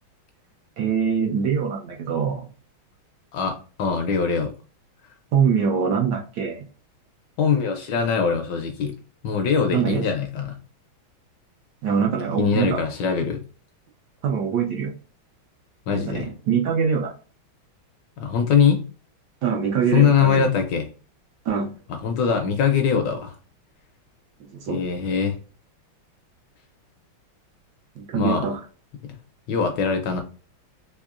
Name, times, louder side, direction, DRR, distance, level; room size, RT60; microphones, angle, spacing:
voice 1, 0.8-2.5 5.3-6.6 9.7-10.0 11.8-12.8 14.2-14.9 15.9-17.1 19.4-20.5 21.4-21.7 24.4-24.8 28.0-28.6, right 7 dB, 70° right, 1.1 m, -23 dB
voice 2, 3.3-4.5 7.4-8.9 9.2-10.6 12.4-13.4 15.9-16.3 18.2-18.8 19.9-20.9 21.9-23.3 24.7-25.4 28.1-28.5 29.5-30.2, left 6 dB, 75° left, 1.1 m, -22 dB
3.5 x 3.1 x 2.4 m
omnidirectional pair, 2.2 m